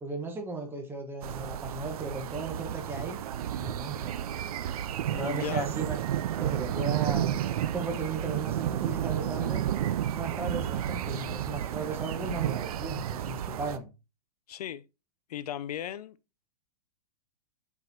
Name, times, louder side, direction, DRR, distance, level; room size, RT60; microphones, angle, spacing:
voice 1, 0.0-3.2 3.6-4.1 5.2-6.0 6.4-7.4 7.7-9.6 10.1-13.9, right 3 dB, 10° right, 1.2 m, -36 dB
sound 1, 1.2-13.8, right 11 dB, 65° right, 0.5 m, -32 dB
voice 2, 5.1-5.7 14.5-14.8 15.3-16.2, left 11 dB, 75° left, 0.5 m, -36 dB
7.7 x 4.7 x 2.8 m
hypercardioid pair, 130°, 20 cm